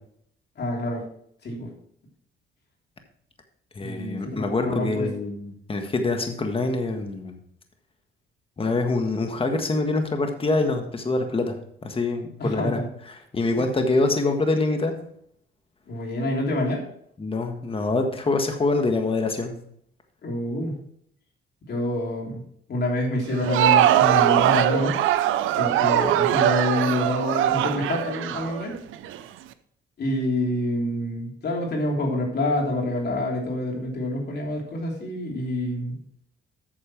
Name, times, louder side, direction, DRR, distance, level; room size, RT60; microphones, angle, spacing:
voice 1, 0.6-1.0 1.4-1.7 3.8-5.1 12.4-12.9 13.5-13.7 15.9-16.8 20.2-20.8 21.7-22.4 22.7-25.0 25.6-28.8 30.0-36.0, left 1 dB, 55° left, 0 dB, 3.1 m, -27 dB
voice 2, 3.7-7.4 8.6-11.6 11.8-12.8 13.1-14.9 17.2-19.5, left 3 dB, 30° left, 5 dB, 1.5 m, -25 dB
Crowd, 23.3-29.2, right 12 dB, 85° right, 0.6 m, -21 dB
8.9 x 6.7 x 4.5 m, 0.67 s
cardioid pair, 90°, 20 cm